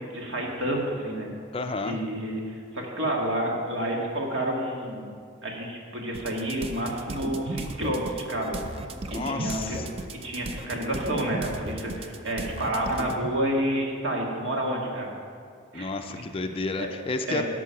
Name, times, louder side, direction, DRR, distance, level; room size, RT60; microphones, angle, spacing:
voice 1, 0.1-1.3 1.8-5.1 5.4-8.6 9.2-9.8 10.1-15.1 15.7-15.9 16.8-16.9 17.3-17.4, right 1 dB, 65° right, -1 dB, 1.8 m, -29 dB
voice 2, 1.5-2.0 9.1-9.9 15.7-17.4, left 3 dB, 25° left, 6 dB, 0.4 m, -31 dB
sound 1, 6.1-13.3, right 2 dB, 30° right, 0.5 m, -35 dB
12.0 x 6.2 x 5.7 m, 2.2 s
head